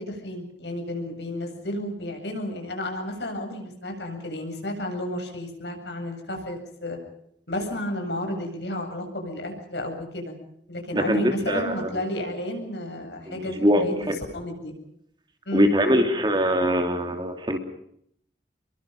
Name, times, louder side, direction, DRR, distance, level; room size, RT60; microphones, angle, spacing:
voice 1, 0.0-7.0 7.5-10.4 10.7-13.6 13.8-13.9 14.3-14.7 15.5-15.7, left 1 dB, 75° left, 3 dB, 8.0 m, -32 dB
voice 2, 10.9-11.9 13.3-14.2 15.5-17.6, equal, 25° right, 5 dB, 3.0 m, -23 dB
29.5 x 23.0 x 5.4 m, 0.70 s
head